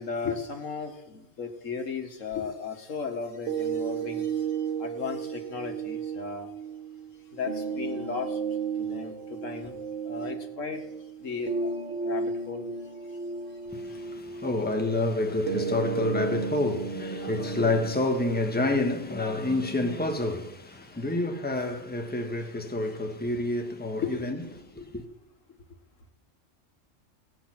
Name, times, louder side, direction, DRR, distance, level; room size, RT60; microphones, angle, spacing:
voice 1, 0.0-4.5 4.8-6.5 7.3-8.4 8.8-9.8 10.0-10.8 11.2-11.7 12.0-12.7 24.0-24.1, left 5 dB, 90° left, 2.0 m, -35 dB
sound 1, 3.5-19.5, right 5 dB, 80° right, 1.7 m, -34 dB
voice 2, 13.7-24.4 24.8-25.0, left 2 dB, 10° left, 1.3 m, -28 dB
17.0 x 8.9 x 6.0 m
omnidirectional pair, 1.3 m